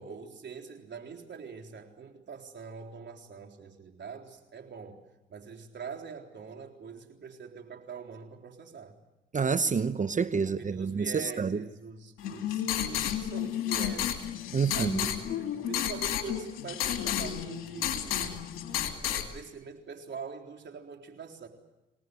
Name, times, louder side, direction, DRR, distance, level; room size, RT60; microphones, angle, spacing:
voice 1, 0.0-5.0 5.3-9.0 10.4-14.3 14.7-18.4 19.0-21.5, right 6 dB, 60° right, 4.0 m, -44 dB
voice 2, 9.3-11.7 14.5-15.0, right 5 dB, 40° right, 0.9 m, -28 dB
sound 1, 12.2-19.3, left 10 dB, 85° left, 2.5 m, -32 dB
26.5 x 18.5 x 9.5 m
supercardioid pair, 55°, 21 cm